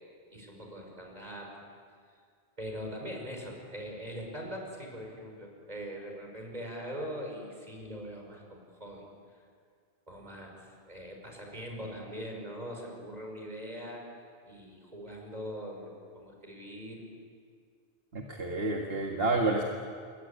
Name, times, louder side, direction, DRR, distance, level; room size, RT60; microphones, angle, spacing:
voice 1, 0.0-1.5 2.6-9.1 9.3-9.4 10.1-14.0 14.4-17.0, equal, 35° right, 1 dB, 6.0 m, -42 dB
voice 2, 18.1-19.6, right 2 dB, 60° right, 1 dB, 2.1 m, -29 dB
27.5 x 23.0 x 8.7 m, 2.1 s
omnidirectional pair, 1.1 m